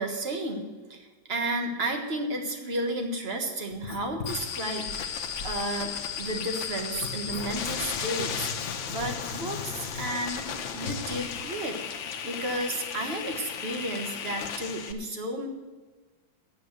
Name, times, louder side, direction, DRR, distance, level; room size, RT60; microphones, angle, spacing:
voice 1, 0.0-8.5 8.9-11.8 12.2-15.5, right 1 dB, 35° right, 3 dB, 1.5 m, -32 dB
Writing, 3.7-11.4, left 4 dB, 45° left, 1.5 m, -41 dB
sound 1, 4.3-14.9, left 7 dB, 80° left, 1.6 m, -35 dB
9.3 x 8.2 x 7.9 m, 1.3 s
omnidirectional pair, 2.1 m